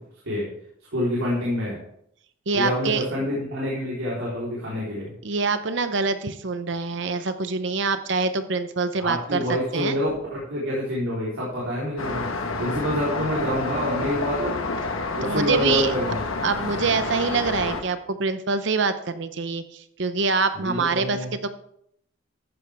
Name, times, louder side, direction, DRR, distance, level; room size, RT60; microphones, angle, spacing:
voice 1, 0.9-1.8 2.5-5.1 9.0-14.6 15.1-16.2 20.5-21.3, left 1 dB, 85° right, -6 dB, 3.8 m, -27 dB
voice 2, 2.5-3.1 5.2-10.0 15.2-15.9 16.4-21.5, right 4 dB, 60° right, 10 dB, 0.7 m, -25 dB
Traffic noise roadway noise, 12.0-17.8, left 3 dB, 90° left, 1.3 m, -29 dB
14.0 x 9.8 x 3.5 m, 0.71 s
head